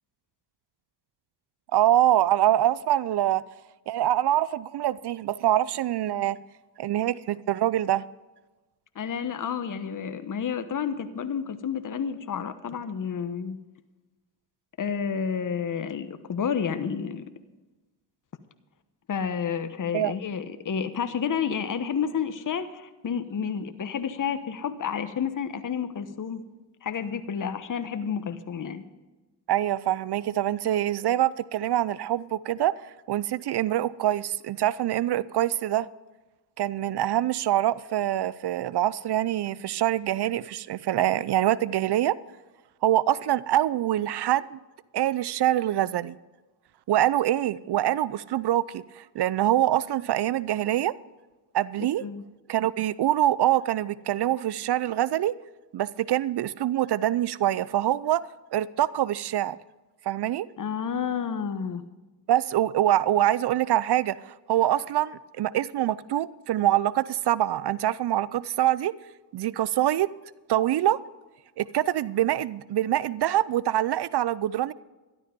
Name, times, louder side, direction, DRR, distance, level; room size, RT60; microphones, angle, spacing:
voice 1, 1.7-3.4 3.9-6.4 6.8-8.0 19.9-20.1 29.5-32.7 33.1-35.9 36.6-42.1 42.8-44.6 44.9-46.2 46.9-50.9 51.5-52.0 52.5-55.3 55.7-59.6 60.1-60.5 62.3-68.9 69.3-70.1 70.5-71.0 71.6-74.7, right 13 dB, 55° right, 0.6 m, -25 dB
voice 2, 8.9-13.6 14.8-17.2 19.1-26.4 26.8-28.8 51.8-52.2 60.6-61.8, left 7 dB, 40° left, 1.2 m, -30 dB
13.0 x 11.5 x 5.2 m
cardioid pair, 70°, 49 cm